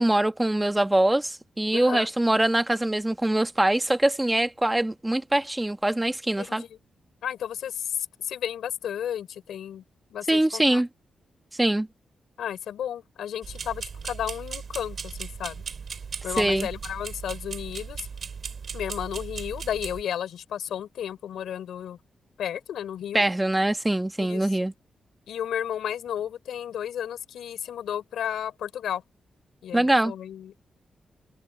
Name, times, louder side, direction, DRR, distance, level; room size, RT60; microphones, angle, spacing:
voice 1, 0.0-6.6 10.3-10.9 11.6-11.9 16.4-16.7 23.1-24.7 29.7-30.1, right 1 dB, 15° right, 1.3 m, -23 dB
voice 2, 1.7-2.1 6.4-6.8 7.2-9.8 10.1-10.8 12.4-15.6 16.2-18.1 18.7-22.0 22.4-23.2 24.2-24.4 25.3-29.0 29.6-30.6, left 9 dB, 85° left, 3.9 m, -33 dB
sound 1, 13.4-20.0, right 6 dB, 60° right, 2.8 m, -37 dB
cardioid pair, 60°, 0 cm